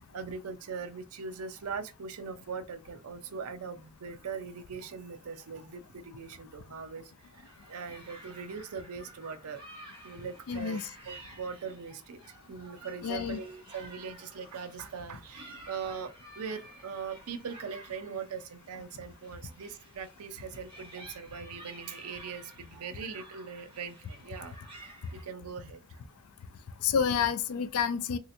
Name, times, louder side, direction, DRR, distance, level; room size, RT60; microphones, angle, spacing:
voice 1, 0.0-9.6 10.0-26.0, right 5 dB, 75° right, 0.5 m, -41 dB
sound 1, 7.2-25.2, right 1 dB, 25° right, 1.1 m, -52 dB
voice 2, 10.5-10.8 13.0-13.4 26.8-28.2, left 7 dB, 75° left, 0.4 m, -29 dB
3.2 x 2.7 x 2.6 m
head